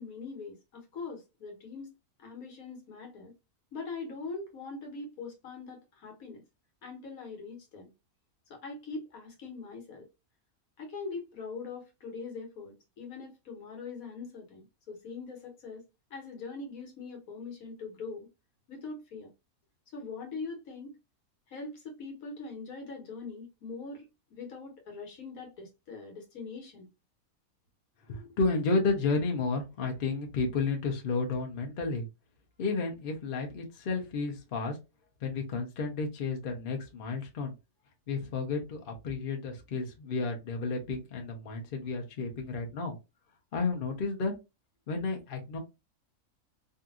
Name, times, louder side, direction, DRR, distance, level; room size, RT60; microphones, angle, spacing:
voice 1, 0.0-1.9 2.2-3.3 3.7-6.4 6.8-7.9 8.5-10.0 10.8-18.3 18.7-19.3 19.9-21.0 21.5-26.9, left 4 dB, 70° left, 1.3 m, -42 dB
voice 2, 28.1-32.1 32.6-34.8 35.2-37.5 38.1-43.0 43.5-44.3 44.9-45.6, left 4 dB, 50° left, 0.7 m, -32 dB
2.7 x 2.5 x 2.3 m
omnidirectional pair, 1.6 m